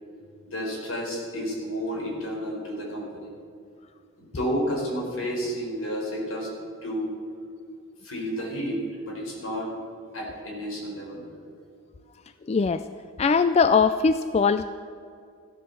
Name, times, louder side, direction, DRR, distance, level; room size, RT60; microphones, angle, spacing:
voice 1, 0.5-3.3 4.3-6.5 6.8-7.2 8.0-9.7 10.1-11.2, equal, 75° left, -1 dB, 4.3 m, -31 dB
voice 2, 12.5-12.9 13.2-14.7, left 5 dB, 30° left, 12 dB, 0.3 m, -21 dB
15.0 x 11.0 x 7.0 m, 2.3 s
head